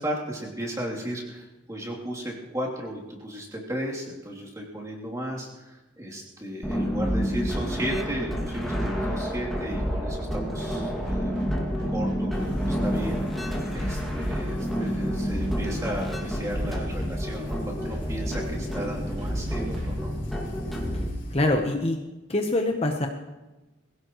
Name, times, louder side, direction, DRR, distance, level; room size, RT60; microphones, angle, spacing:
voice 1, 0.0-20.1, equal, 20° right, -4 dB, 3.1 m, -35 dB
sound 1, 6.6-21.1, equal, ahead, 2.3 m, -29 dB
sound 2, 10.5-20.6, left 1 dB, 60° right, 4.5 m, -40 dB
sound 3, 12.3-21.5, equal, 65° left, 4.9 m, -43 dB
voice 2, 21.3-22.0 22.3-23.1, left 2 dB, 30° left, 3 dB, 1.0 m, -24 dB
22.0 x 16.5 x 3.1 m, 1.1 s
head